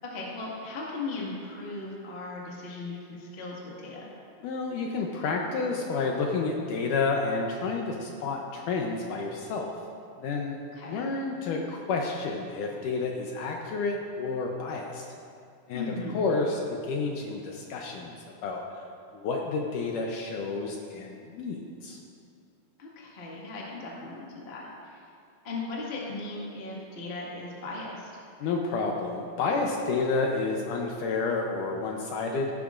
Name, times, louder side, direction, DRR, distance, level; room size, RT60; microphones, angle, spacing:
voice 1, 0.0-4.1 10.7-11.0 15.7-16.2 22.8-25.0 25.4-28.1, left 3 dB, 30° left, -4 dB, 1.1 m, -37 dB
voice 2, 4.4-9.7 10.2-10.6 10.9-15.1 15.7-18.2 18.4-18.6 19.1-22.0 28.4-32.5, left 4 dB, 75° left, 1 dB, 2.1 m, -30 dB
16.0 x 12.0 x 2.5 m, 2.4 s
omnidirectional pair, 4.2 m